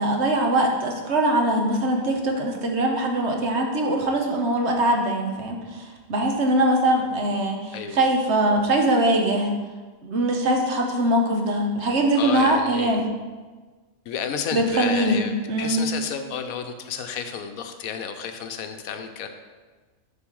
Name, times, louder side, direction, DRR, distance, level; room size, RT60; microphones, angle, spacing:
voice 1, 0.0-9.5 10.0-13.1 14.5-15.8, right 1 dB, 55° right, 2 dB, 1.1 m, -22 dB
voice 2, 12.2-13.0 14.1-19.3, left 7 dB, 80° left, 7 dB, 1.1 m, -31 dB
7.1 x 4.1 x 6.1 m, 1.3 s
omnidirectional pair, 1.5 m